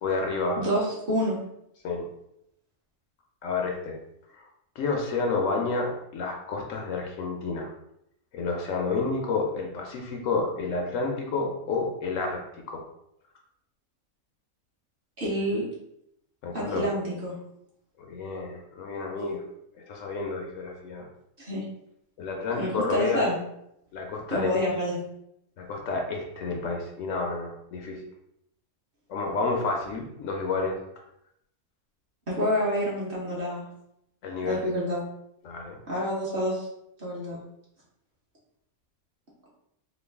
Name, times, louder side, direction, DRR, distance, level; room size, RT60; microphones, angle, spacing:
voice 1, 0.0-0.6 1.8-2.1 3.4-4.0 4.3-4.4 4.8-7.7 8.3-12.8 16.4-16.9 18.0-19.4 19.9-21.1 22.2-23.2 23.9-24.6 25.6-28.0 29.1-30.8 34.2-34.6 35.4-35.8, left 3 dB, 70° left, 1 dB, 0.9 m, -30 dB
voice 2, 0.6-1.4 15.2-15.6 16.5-17.4 21.4-21.6 22.6-23.4 24.3-25.0 32.3-33.6 34.4-35.0 35.9-36.7 37.0-37.4, equal, 45° right, -6 dB, 1.1 m, -28 dB
3.0 x 2.3 x 3.4 m, 0.79 s
omnidirectional pair, 1.5 m